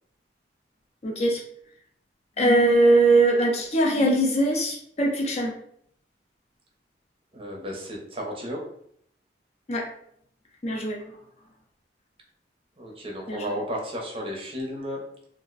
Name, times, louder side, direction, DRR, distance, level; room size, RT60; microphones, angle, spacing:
voice 1, 1.0-1.4 2.4-5.5 9.7-9.9 10.6-11.0 13.3-13.6, right 1 dB, 35° left, 0 dB, 0.5 m, -21 dB
voice 2, 7.3-8.6 12.8-15.0, equal, 30° right, -1 dB, 0.6 m, -33 dB
2.5 x 2.1 x 3.7 m, 0.67 s
head